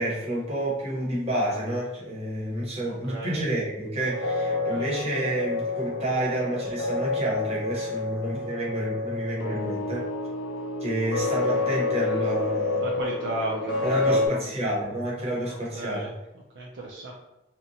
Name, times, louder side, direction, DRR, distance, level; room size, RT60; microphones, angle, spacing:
voice 1, 0.0-10.1 10.8-12.9 13.8-16.1, right 1 dB, 30° right, -5 dB, 0.8 m, -29 dB
voice 2, 2.9-3.4 4.7-4.9 12.8-14.4 15.5-16.1 16.6-17.1, right 2 dB, 65° right, -2 dB, 0.4 m, -34 dB
sound 1, 4.0-14.3, left 3 dB, 80° left, 0.5 m, -29 dB
2.8 x 2.1 x 2.6 m, 0.93 s
head